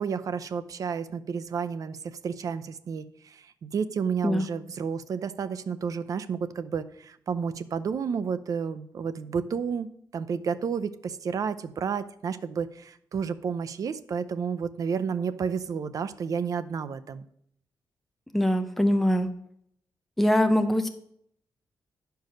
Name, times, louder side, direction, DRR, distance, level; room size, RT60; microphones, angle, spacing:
voice 1, 0.0-9.9 10.1-17.3, right 6 dB, 55° right, 12 dB, 0.6 m, -31 dB
voice 2, 18.3-19.3 20.2-20.9, equal, 5° left, 7 dB, 0.6 m, -22 dB
10.5 x 4.7 x 6.4 m, 0.70 s
wide cardioid pair, 125°, 7 cm